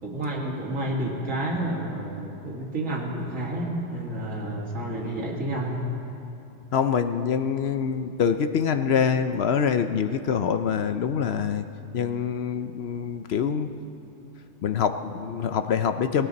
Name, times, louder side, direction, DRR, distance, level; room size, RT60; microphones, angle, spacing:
voice 1, 0.0-5.9, right 1 dB, 80° right, -2 dB, 2.5 m, -30 dB
voice 2, 6.7-11.6 11.9-13.7 14.6-16.3, left 7 dB, 60° left, 8 dB, 0.8 m, -25 dB
19.0 x 17.5 x 4.1 m, 2.9 s
omnidirectional pair, 1.3 m